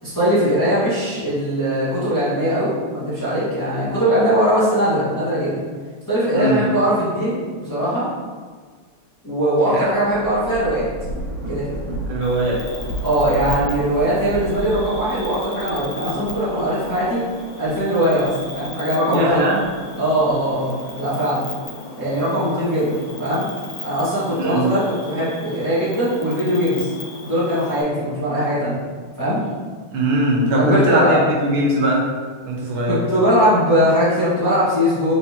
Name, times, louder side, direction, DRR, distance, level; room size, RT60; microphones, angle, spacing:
voice 1, 0.0-5.5 6.1-8.1 9.2-10.9 11.5-11.7 13.0-17.2 17.6-19.4 20.0-21.4 22.0-23.5 23.8-26.9 27.2-28.8 29.2-29.4 30.5-31.3 32.9-35.1, equal, 10° left, -12 dB, 1.0 m, -20 dB
Thunder / Rain, 9.9-18.6 19.2-20.5, right 1 dB, 30° left, 1.5 m, -32 dB
voice 2, 12.1-12.6 19.1-19.7 24.4-24.7 29.9-32.1 32.5-33.0, right 1 dB, 80° right, -3 dB, 1.6 m, -20 dB
Cricket, 12.2-27.8, left 2 dB, 75° left, 0.6 m, -37 dB
4.6 x 3.4 x 2.8 m, 1.5 s
omnidirectional pair, 2.4 m